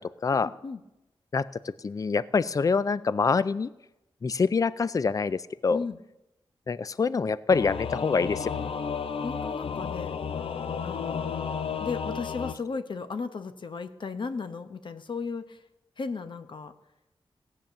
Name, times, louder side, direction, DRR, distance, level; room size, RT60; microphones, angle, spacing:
voice 1, 0.3-0.8 5.7-6.0 9.2-10.1 10.8-11.4 11.8-15.6 16.0-16.7, left 4 dB, 60° left, 10 dB, 0.9 m, -35 dB
voice 2, 1.8-3.7 4.2-5.8 6.7-8.7, left 5 dB, 40° left, 17 dB, 0.4 m, -25 dB
Singing / Musical instrument, 7.5-12.5, left 6 dB, 85° left, 0.7 m, -32 dB
16.5 x 8.8 x 6.7 m, 0.96 s
wide cardioid pair, 100°, 9 cm